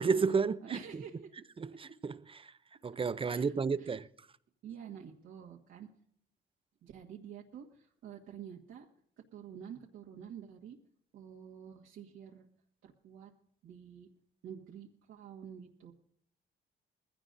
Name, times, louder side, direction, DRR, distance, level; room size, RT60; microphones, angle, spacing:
voice 1, 0.0-0.8 1.6-2.5 2.8-4.0, right 5 dB, 25° right, 0.6 m, -32 dB
voice 2, 0.6-1.3 3.3-3.9 4.6-5.9 6.8-7.6 8.0-8.8 9.3-10.8 11.1-12.5 12.8-13.3 13.6-14.1 14.4-15.9, right 8 dB, 85° right, 1.7 m, -48 dB
20.5 x 16.0 x 2.6 m
cardioid pair, 90°, 20 cm